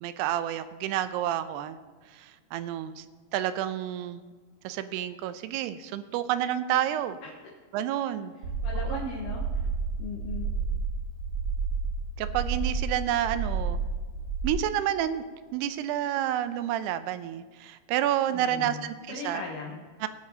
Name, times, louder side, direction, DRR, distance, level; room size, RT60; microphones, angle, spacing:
voice 1, 0.0-1.8 2.1-3.1 3.3-4.2 4.6-7.2 7.7-8.3 8.8-9.1 12.2-13.8 14.4-15.2 15.5-19.4 20.0-20.1, right 11 dB, 85° right, 11 dB, 2.6 m, -29 dB
sound 1, 8.4-14.5, right 4 dB, 60° right, 2.2 m, -30 dB
voice 2, 8.6-9.6 10.0-10.5 18.3-18.8 19.1-19.8, left 3 dB, 65° left, -2 dB, 2.5 m, -37 dB
18.0 x 10.0 x 2.8 m, 1.4 s
omnidirectional pair, 4.7 m